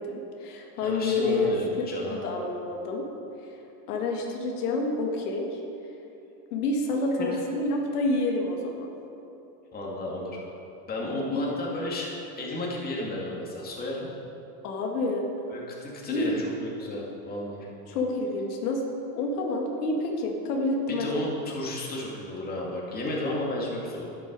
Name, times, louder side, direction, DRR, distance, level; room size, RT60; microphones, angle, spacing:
voice 1, 0.0-3.1 3.9-5.6 6.5-8.9 11.3-11.5 14.6-15.3 16.0-16.4 17.9-18.9 19.1-21.1, left 2 dB, 85° left, 1 dB, 1.9 m, -28 dB
voice 2, 0.8-2.2 7.2-7.4 9.7-10.4 10.9-12.1 12.4-14.1 15.5-17.7 20.9-24.1, left 1 dB, 20° left, -3 dB, 2.4 m, -33 dB
11.5 x 10.5 x 4.8 m, 2.8 s
supercardioid pair, 140°, 44 cm